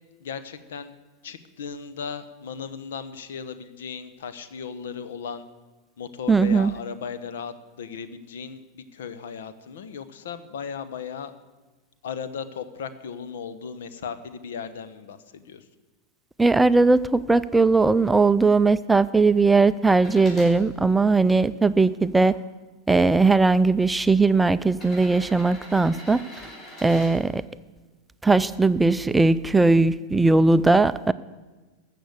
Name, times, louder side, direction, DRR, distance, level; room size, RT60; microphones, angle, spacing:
voice 1, 0.2-0.9 1.2-5.5 6.0-11.3 12.0-15.7, left 6 dB, 75° left, 12 dB, 1.0 m, -36 dB
voice 2, 6.3-6.7 16.4-22.3 22.9-26.2 26.8-27.4 28.2-31.1, right 3 dB, 10° right, 14 dB, 0.4 m, -19 dB
sound 1, 19.9-20.5 21.3-22.3 23.3-23.4 24.7-27.1 29.0-29.1, left 1 dB, 35° left, 5.4 m, -43 dB
14.5 x 6.8 x 8.0 m, 1.2 s
hypercardioid pair, 100°, 0 cm